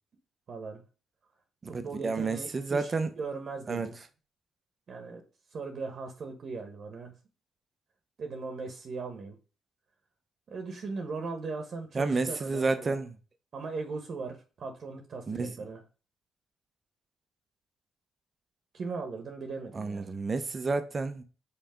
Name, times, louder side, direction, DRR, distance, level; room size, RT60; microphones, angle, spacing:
voice 1, 0.5-0.8 1.7-4.0 4.9-5.2 5.5-7.1 8.2-9.4 10.5-13.0 13.5-15.8 18.7-20.1, right 4 dB, 50° right, 1.3 m, -38 dB
voice 2, 1.7-3.1 3.7-3.9 11.9-13.1 15.3-15.5 19.7-21.2, right 3 dB, 35° right, 1.0 m, -30 dB
5.8 x 4.3 x 5.1 m
cardioid pair, 90°, 0 cm